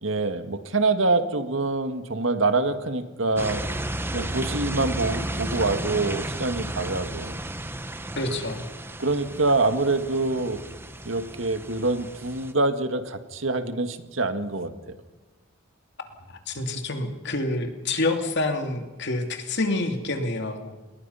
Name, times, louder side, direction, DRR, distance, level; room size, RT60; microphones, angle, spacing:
voice 1, 0.0-3.7 4.1-7.4 9.0-10.6 11.1-15.0, right 3 dB, 65° right, 8 dB, 1.9 m, -25 dB
sound 1, 3.4-12.5, right 1 dB, 10° right, 1.2 m, -33 dB
voice 2, 8.2-8.7 16.3-20.7, left 2 dB, 55° left, 5 dB, 2.8 m, -27 dB
29.0 x 21.0 x 5.7 m, 1.2 s
head